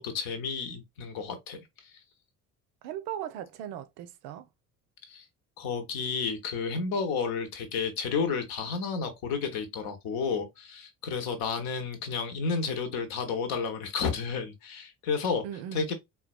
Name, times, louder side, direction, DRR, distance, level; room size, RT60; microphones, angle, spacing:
voice 1, 0.0-2.0 5.1-5.2 5.6-15.4 15.7-15.9, left 5 dB, 55° left, 0.9 m, -31 dB
voice 2, 2.8-4.5 15.4-15.9, right 10 dB, 60° right, 0.6 m, -38 dB
3.9 x 2.2 x 2.3 m
figure-of-eight pair, 50°, 44 cm